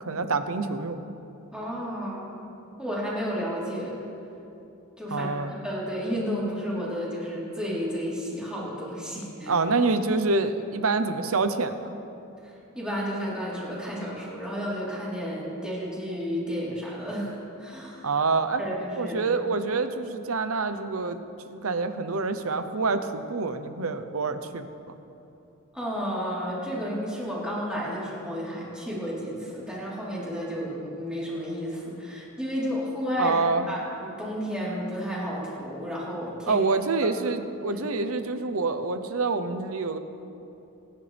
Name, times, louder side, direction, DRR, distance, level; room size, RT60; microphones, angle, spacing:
voice 1, 0.0-1.0 5.1-5.5 9.5-11.9 18.0-18.6 19.0-24.9 33.2-33.7 36.5-40.0, right 3 dB, 65° right, 9 dB, 0.9 m, -27 dB
voice 2, 1.5-2.4 2.8-4.0 5.0-9.5 12.4-18.1 18.6-19.2 25.7-33.4 33.7-36.6 37.7-37.8, equal, 5° right, -8 dB, 4.0 m, -32 dB
27.0 x 11.0 x 3.5 m, 2.8 s
head